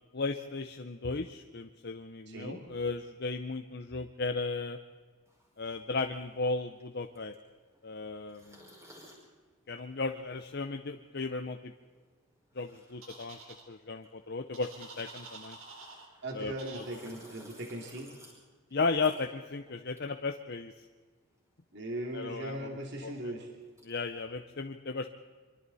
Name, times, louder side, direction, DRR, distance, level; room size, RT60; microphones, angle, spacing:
voice 1, 0.1-4.8 5.6-7.3 7.8-8.6 9.7-11.7 12.6-15.6 16.3-16.8 18.7-20.7 22.1-22.7 23.0-23.1 23.8-25.1, left 3 dB, 50° left, 5 dB, 0.8 m, -35 dB
voice 2, 2.3-2.6 16.2-18.1 21.7-23.5, right 1 dB, 50° right, 0 dB, 2.8 m, -39 dB
sound 1, 5.3-21.1 21.3-24.2, equal, 15° right, 5.5 m, -60 dB
sound 2, 13.0-13.6 14.5-16.1 16.6-17.0, right 4 dB, 70° right, 3.8 m, -48 dB
25.0 x 24.5 x 4.2 m, 1.4 s
head